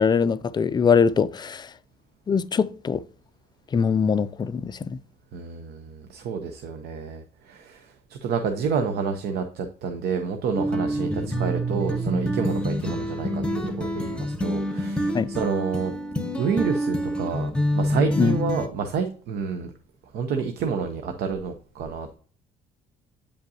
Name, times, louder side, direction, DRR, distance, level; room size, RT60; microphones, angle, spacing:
voice 1, 0.0-1.7 2.3-3.0 3.7-5.0 15.1-15.3 18.2-18.4, left 6 dB, 25° left, 0.4 m, -22 dB
voice 2, 5.3-15.9 16.2-19.7 20.1-22.2, right 5 dB, 70° right, 0.7 m, -29 dB
sound 1, 10.5-18.7, equal, 5° left, 0.7 m, -27 dB
8.5 x 5.2 x 2.7 m
cardioid pair, 110°, 17 cm